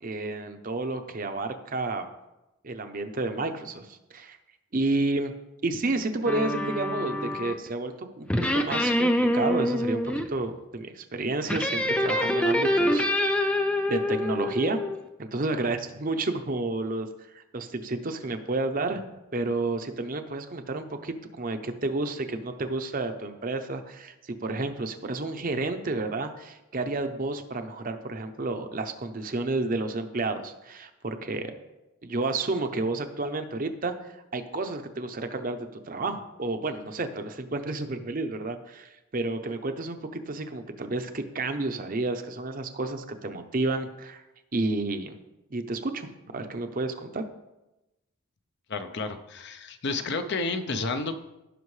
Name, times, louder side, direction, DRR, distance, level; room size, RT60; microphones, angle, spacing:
voice 1, 0.0-2.1 2.6-4.4 4.7-5.3 5.6-13.5 13.9-14.8 15.2-17.1 17.3-19.1 19.3-31.5 32.0-33.9 34.3-44.2 44.5-45.2 45.5-46.1 46.3-47.3, right 2 dB, 40° right, 7 dB, 0.6 m, -31 dB
sound 1, 6.3-7.7 8.3-10.3 11.5-15.0, left 1 dB, 5° left, 0.4 m, -26 dB
voice 2, 48.7-51.1, left 3 dB, 50° left, 9 dB, 0.6 m, -31 dB
16.0 x 5.6 x 3.2 m, 0.98 s
head